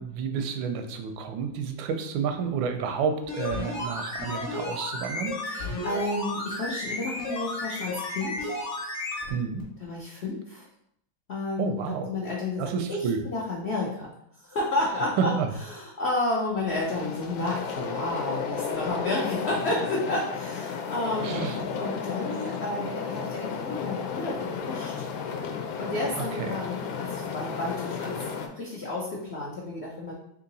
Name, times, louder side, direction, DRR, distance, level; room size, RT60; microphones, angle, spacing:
voice 1, 0.0-5.4 9.3-9.7 11.6-12.1 12.6-13.2 15.2-15.5 21.2-21.6 26.2-26.6, right 6 dB, 85° right, 6 dB, 1.3 m, -30 dB
sound 1, 3.2-9.3 9.6-9.7, left 2 dB, 45° left, 1.2 m, -33 dB
voice 2, 5.4-8.5 9.8-10.7 11.3-14.1 14.4-15.3 15.7-21.5 21.8-25.0 25.8-28.2 28.5-30.1, left 2 dB, 75° left, -4 dB, 0.6 m, -31 dB
sound 2, 16.7-28.5, left 6 dB, 90° left, 1.4 m, -33 dB
3.6 x 2.8 x 3.9 m, 0.75 s
omnidirectional pair, 2.1 m